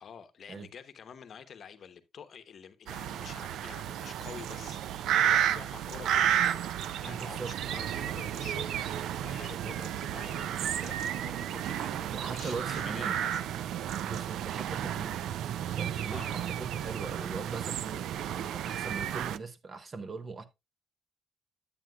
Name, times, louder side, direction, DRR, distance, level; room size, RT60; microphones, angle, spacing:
voice 1, 0.0-6.7 7.0-13.9 16.1-16.6, left 7 dB, 55° left, 0.8 m, -48 dB
sound 1, 2.9-19.4, right 10 dB, 80° right, 0.3 m, -32 dB
voice 2, 7.1-7.7 12.1-13.2 13.9-15.2 15.8-20.5, right 4 dB, 40° right, 0.9 m, -40 dB
9.1 x 8.7 x 2.2 m
cardioid pair, 90°, 0 cm